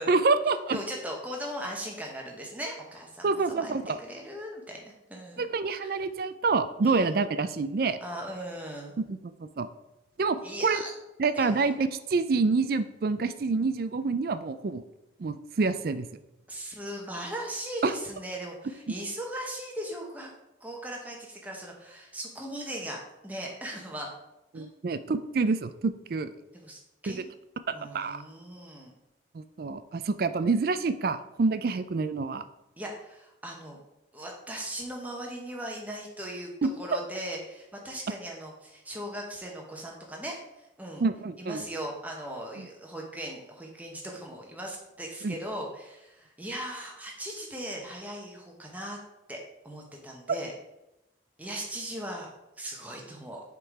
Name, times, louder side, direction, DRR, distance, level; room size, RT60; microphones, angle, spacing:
voice 1, 0.1-0.8 3.2-4.0 5.4-8.0 9.1-9.2 9.6-9.7 10.2-10.8 11.2-14.8 15.2-16.1 17.8-17.9 24.5-26.3 27.1-27.2 27.9-28.2 29.3-32.4 36.6-36.7 41.0-41.6 45.2-45.3, right 4 dB, 50° right, 12 dB, 0.4 m, -27 dB
voice 2, 0.7-5.4 5.8-6.0 6.8-7.2 8.0-8.9 10.4-10.9 11.3-11.7 16.5-20.3 20.6-24.1 24.5-24.7 26.5-27.3 27.7-28.9 32.8-33.8 34.1-41.0 41.4-49.0 49.3-50.5 51.4-53.4, right 1 dB, 10° right, -1 dB, 1.0 m, -39 dB
6.9 x 3.8 x 4.7 m, 0.92 s
head